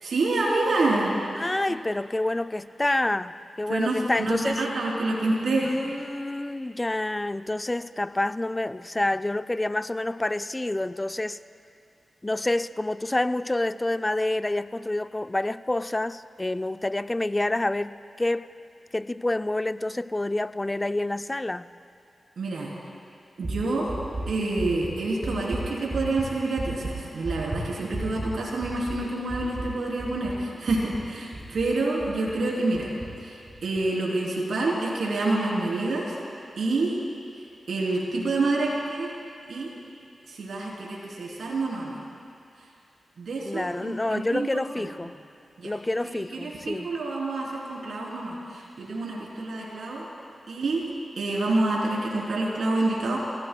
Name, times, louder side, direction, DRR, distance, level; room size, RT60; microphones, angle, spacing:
voice 1, 0.0-1.5 3.7-5.8 22.4-22.7 23.4-23.9 24.3-32.9 33.2-36.2 36.6-36.9 37.7-39.1 39.5-39.7 40.3-42.0 43.2-44.9 45.6-45.7 46.0-50.1 50.5-50.8 51.2-53.2, right 2 dB, 75° right, -5 dB, 3.5 m, -27 dB
voice 2, 1.4-4.6 5.6-11.4 12.2-18.5 18.9-21.7 43.5-45.1 45.6-46.9, left 2 dB, 25° left, 12 dB, 0.5 m, -28 dB
sound 1, 23.4-32.4 32.7-33.1 33.5-33.8, right 2 dB, 35° right, 4.6 m, -35 dB
29.5 x 16.5 x 2.3 m, 2.6 s
cardioid pair, 40°, 0 cm